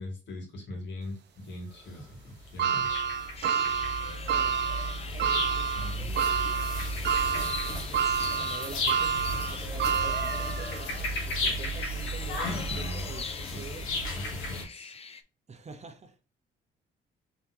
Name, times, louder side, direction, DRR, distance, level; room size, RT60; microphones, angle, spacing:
voice 1, 0.0-3.0 5.7-6.1 12.7-13.1 13.4-13.7 14.1-14.9, left 1 dB, 65° left, 2.2 m, -41 dB
sound 1, 0.7-0.8 1.7-14.6, left 1 dB, 85° left, 1.4 m, -34 dB
sound 2, 2.6-11.0 11.4-11.5 12.7-12.8, right 7 dB, 60° right, 0.5 m, -29 dB
sound 3, 3.3-15.2, left 5 dB, 30° left, 0.5 m, -43 dB
voice 2, 4.3-4.7 5.1-6.6 8.0-9.1 9.5-13.9 15.5-16.1, right 3 dB, 35° right, 0.8 m, -46 dB
4.2 x 3.8 x 2.8 m
cardioid pair, 90°, 20 cm